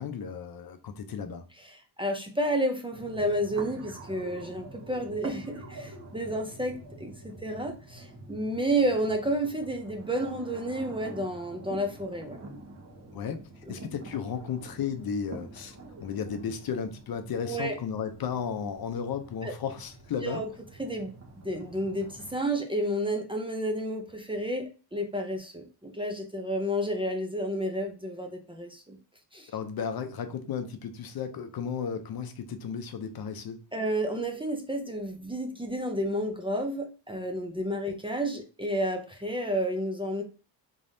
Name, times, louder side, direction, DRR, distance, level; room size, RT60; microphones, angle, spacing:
voice 1, 0.0-1.5 13.1-13.4 13.7-20.4 29.5-33.6, left 7 dB, 55° left, 0.7 m, -34 dB
voice 2, 1.6-12.4 13.7-13.8 17.5-17.8 19.4-19.5 20.2-20.5 20.8-29.0 29.3-29.5 33.7-40.2, right 1 dB, 10° right, 0.5 m, -31 dB
sound 1, 2.9-22.4, right 2 dB, 35° right, 1.1 m, -46 dB
3.7 x 3.4 x 2.6 m
cardioid pair, 105°, 43 cm